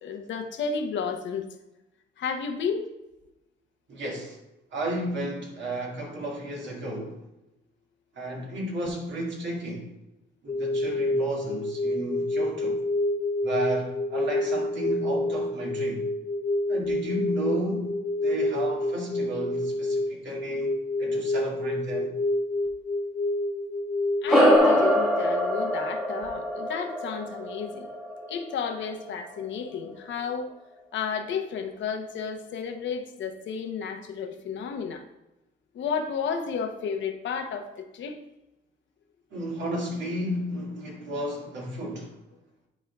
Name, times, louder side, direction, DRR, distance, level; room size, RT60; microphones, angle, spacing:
voice 1, 0.0-1.5 2.2-2.9 24.2-27.9 28.3-30.5 30.9-35.0 35.7-38.2, left 6 dB, 70° left, 0.8 m, -32 dB
voice 2, 3.9-4.4 4.7-7.2 8.1-9.9 10.4-12.8 13.4-16.1 16.7-20.7 21.0-22.1 39.3-42.2, right 1 dB, 65° right, 2.0 m, -33 dB
sound 1, 10.5-24.6, left 1 dB, 35° left, 0.9 m, -28 dB
sound 2, 24.3-29.0, equal, 5° right, 1.6 m, -24 dB
10.0 x 4.4 x 2.3 m
cardioid pair, 90°, 20 cm